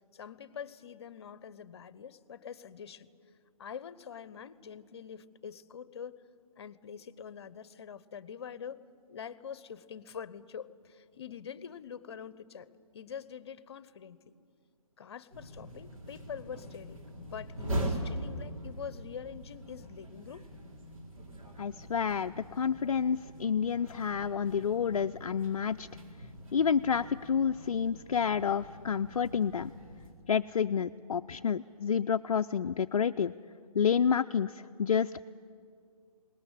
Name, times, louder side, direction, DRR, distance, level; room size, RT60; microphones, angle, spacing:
voice 1, 0.0-3.1 3.6-6.2 6.6-8.8 9.1-12.7 12.9-14.3 15.0-20.5, left 7 dB, 45° left, 18 dB, 0.9 m, -45 dB
sound 1, 15.3-30.1, right 1 dB, 60° right, 4.5 m, -42 dB
voice 2, 21.6-25.9 26.5-29.7 30.3-33.3 33.7-34.5 34.8-35.2, left 7 dB, 60° left, 7 dB, 0.5 m, -29 dB
20.5 x 19.0 x 9.9 m, 2.3 s
figure-of-eight pair, 150°, 20 cm